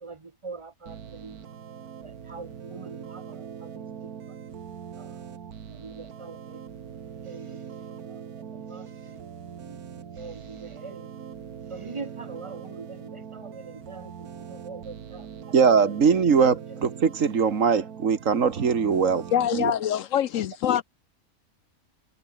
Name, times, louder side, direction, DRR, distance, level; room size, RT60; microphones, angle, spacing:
voice 1, 0.0-1.4 2.0-3.8 5.0-5.2 5.7-6.6 7.2-7.6 8.1-8.2 8.5-9.2 9.6-9.8 10.2-11.1 11.7-15.3 15.6-15.8, right 4 dB, 25° right, 1.1 m, -43 dB
sound 1, 0.9-19.5, right 7 dB, 85° right, 1.9 m, -41 dB
voice 2, 15.5-19.2 19.5-19.7, right 6 dB, 60° right, 1.9 m, -21 dB
voice 3, 19.3-20.8, left 10 dB, 65° left, 1.0 m, -24 dB
omnidirectional pair, 1.5 m